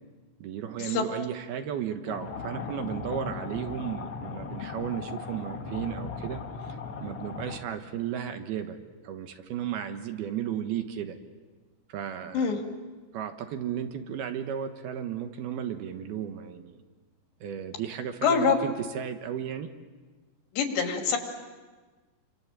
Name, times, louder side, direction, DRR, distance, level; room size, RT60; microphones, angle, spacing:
voice 1, 0.4-8.8 9.0-11.2 11.9-12.6 13.1-16.8 17.4-19.7, right 9 dB, 70° right, 7 dB, 2.9 m, -34 dB
sound 1, 2.1-7.6, left 5 dB, 50° left, 1.8 m, -37 dB
voice 2, 18.2-18.6 20.5-21.2, left 6 dB, 75° left, 3 dB, 4.9 m, -24 dB
29.0 x 25.5 x 7.5 m, 1.3 s
omnidirectional pair, 5.0 m